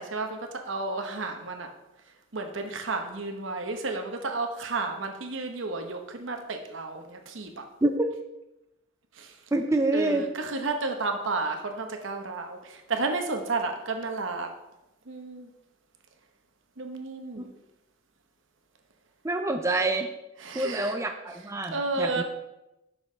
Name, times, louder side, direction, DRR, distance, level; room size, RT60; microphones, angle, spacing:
voice 1, 0.0-1.7 2.3-7.6 9.2-9.3 9.9-14.5 15.1-15.5 16.8-17.5 20.4-20.9 21.7-22.2, right 3 dB, 70° right, 5 dB, 1.0 m, -32 dB
voice 2, 9.5-10.2 17.4-17.5 19.2-20.1 20.5-22.2, right 2 dB, 15° right, 4 dB, 0.4 m, -26 dB
6.1 x 5.4 x 4.9 m, 0.93 s
head